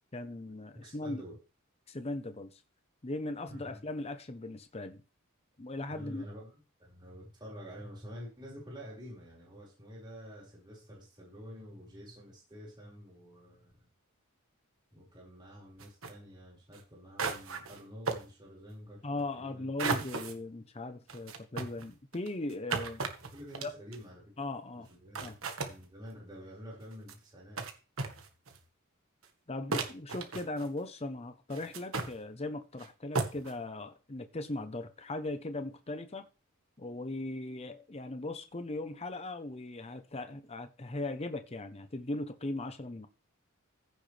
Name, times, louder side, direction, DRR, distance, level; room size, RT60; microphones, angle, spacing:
voice 1, 0.1-1.2 1.9-2.6 3.0-5.0 5.6-6.2 19.0-23.0 23.6-23.7 24.4-24.9 25.2-25.4 29.5-36.3 36.8-43.1, left 2 dB, 30° left, 0.8 m, -38 dB
voice 2, 0.8-1.4 3.5-3.8 5.9-13.9 14.9-19.7 23.3-24.3 24.7-25.3 25.6-27.6, equal, 20° right, 4.9 m, -48 dB
sound 1, 15.8-16.1 16.7-16.8 17.2-17.8 18.1-18.3 19.8-20.3 21.1-24.0 24.9-25.0 25.1-25.8 26.8-27.1 27.6-27.7 28.0-28.6 29.2-29.3 29.7-30.8 31.5-32.1 32.8-32.9 33.1-33.5, right 4 dB, 70° right, 1.5 m, -35 dB
15.0 x 6.4 x 3.3 m
head